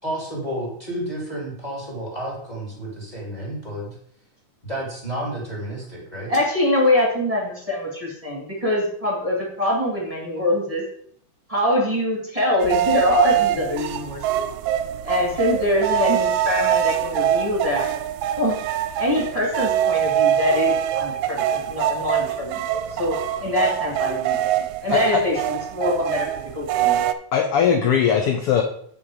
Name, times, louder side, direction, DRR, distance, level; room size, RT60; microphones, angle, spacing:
voice 1, 0.0-3.9 4.6-6.3, right 1 dB, 15° left, -2 dB, 2.0 m, -31 dB
voice 2, 6.3-10.8 11.5-14.4 15.0-17.9 18.4-18.6 19.0-22.6 23.0-26.3 26.5-27.0, left 1 dB, 15° right, -3 dB, 1.7 m, -23 dB
sound 1, 12.6-27.1, right 11 dB, 80° right, 1.9 m, -24 dB
voice 3, 24.9-25.2 27.3-28.6, left 7 dB, 90° left, 5 dB, 1.2 m, -19 dB
8.7 x 5.5 x 4.8 m, 0.64 s
omnidirectional pair, 3.5 m